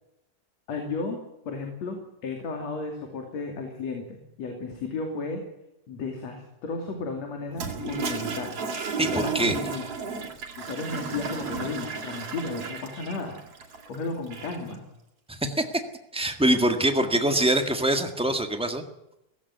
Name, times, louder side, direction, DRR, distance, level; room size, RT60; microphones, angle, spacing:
voice 1, 0.7-1.2 1.4-2.0 2.2-5.4 5.9-8.6 9.0-9.9 10.6-13.4 13.9-14.8 17.1-17.4, left 3 dB, 55° left, 3 dB, 3.8 m, -34 dB
Toilet flush, 7.5-14.7, right 5 dB, 50° right, 3.8 m, -34 dB
voice 2, 9.0-9.6 15.3-15.6 16.1-18.8, right 1 dB, 5° right, 6 dB, 0.7 m, -24 dB
17.5 x 16.5 x 9.5 m, 0.85 s
omnidirectional pair, 3.6 m